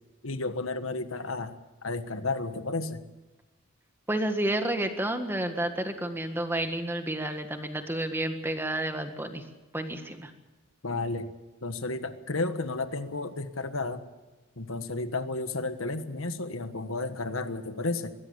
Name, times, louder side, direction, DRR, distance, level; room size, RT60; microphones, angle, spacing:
voice 1, 0.2-3.0 10.8-11.3 11.6-14.0 14.6-18.1, left 3 dB, 70° left, 10 dB, 1.5 m, -32 dB
voice 2, 4.1-9.4 9.7-10.3, right 1 dB, 10° right, 6 dB, 1.7 m, -30 dB
22.0 x 16.0 x 8.5 m, 1.1 s
head